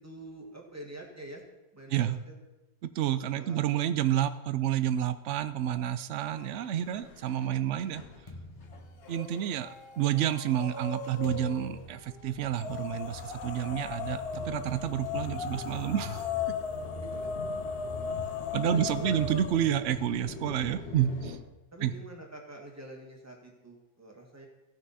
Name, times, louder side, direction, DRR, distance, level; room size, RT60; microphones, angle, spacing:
voice 1, 0.0-1.4 1.7-2.3 3.1-3.7 16.8-17.3 18.6-19.2 21.7-24.5, right 1 dB, 10° right, 0 dB, 1.7 m, -46 dB
voice 2, 2.8-8.0 9.1-16.2 18.5-21.4 21.8-21.9, right 11 dB, 70° right, 13 dB, 0.7 m, -29 dB
sound 1, 6.2-21.4, left 3 dB, 45° left, 1.5 m, -44 dB
sound 2, 8.3-9.7 10.5-17.5, left 1 dB, 20° left, 1.1 m, -50 dB
sound 3, 9.0-9.6 10.0-11.8 12.5-19.7, left 6 dB, 75° left, 1.3 m, -37 dB
16.5 x 5.9 x 4.1 m, 1.0 s
omnidirectional pair, 1.7 m